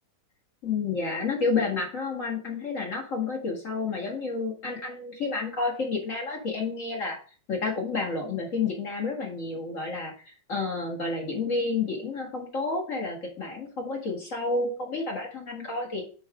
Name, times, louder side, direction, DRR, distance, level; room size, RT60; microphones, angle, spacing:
voice 1, 0.6-7.2 7.5-16.1, left 4 dB, 40° left, 0 dB, 1.1 m, -30 dB
9.7 x 4.7 x 3.6 m, 0.39 s
omnidirectional pair, 4.2 m